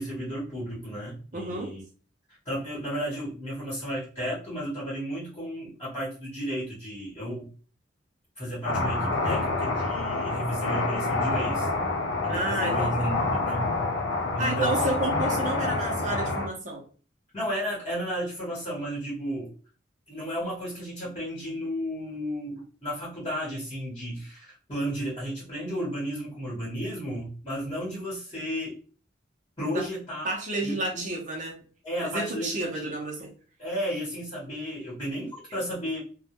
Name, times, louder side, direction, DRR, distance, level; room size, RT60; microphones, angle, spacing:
voice 1, 0.0-1.8 2.3-7.5 8.4-11.7 12.2-13.7 14.3-14.9 17.3-19.5 20.1-28.8 29.6-30.3 30.6-31.0 31.8-32.9 33.6-36.0, equal, 25° left, -6 dB, 1.0 m, -33 dB
voice 2, 1.3-1.7 12.3-13.1 14.4-16.8 29.7-29.9 30.2-31.6 32.0-33.3, right 2 dB, 40° right, 0 dB, 0.5 m, -31 dB
sound 1, 8.6-16.5, left 2 dB, 85° left, 0.5 m, -27 dB
2.2 x 2.1 x 2.8 m, 0.39 s
head